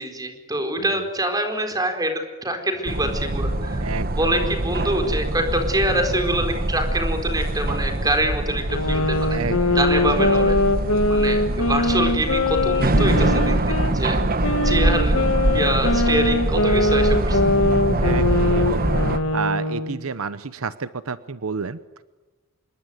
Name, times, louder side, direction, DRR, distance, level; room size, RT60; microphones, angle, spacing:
voice 1, 0.0-2.1 2.4-3.8 4.2-9.4 9.7-10.6 11.1-14.2 14.6-15.2 15.5-17.4, right 1 dB, 20° right, 5 dB, 4.5 m, -25 dB
sound 1, 2.9-19.2, right 1 dB, 45° right, 1.4 m, -24 dB
voice 2, 3.8-4.8 9.3-9.9 10.1-10.5 18.0-22.0, right 5 dB, 80° right, 14 dB, 0.9 m, -31 dB
sound 2, 8.7-13.9 14.4-20.0, left 2 dB, 80° left, 1.8 m, -22 dB
26.5 x 22.0 x 9.5 m, 1.2 s
head